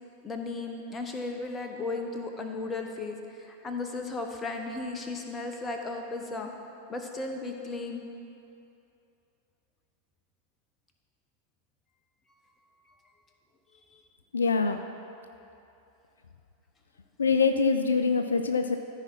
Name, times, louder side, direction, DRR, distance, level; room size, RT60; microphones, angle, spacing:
voice 1, 0.2-6.5 6.9-8.0 13.9-14.0, left 3 dB, 15° left, 3 dB, 0.9 m, -35 dB
voice 2, 14.3-14.8 17.2-18.8, left 5 dB, 70° left, 8 dB, 0.3 m, -24 dB
14.0 x 4.9 x 4.5 m, 2.7 s
figure-of-eight pair, 90°, 0 cm